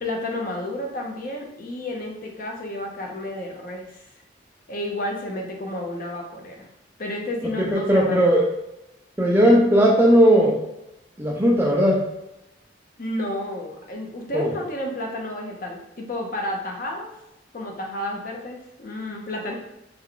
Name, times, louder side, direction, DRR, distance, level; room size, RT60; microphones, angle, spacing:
voice 1, 0.0-4.1 4.7-6.7 7.0-8.2 13.0-17.1 17.5-19.6, left 1 dB, 45° left, 0 dB, 0.7 m, -31 dB
voice 2, 7.7-8.4 9.2-10.6 11.2-12.0 14.3-14.5, equal, 10° right, -3 dB, 0.4 m, -17 dB
3.3 x 2.3 x 3.7 m, 0.90 s
head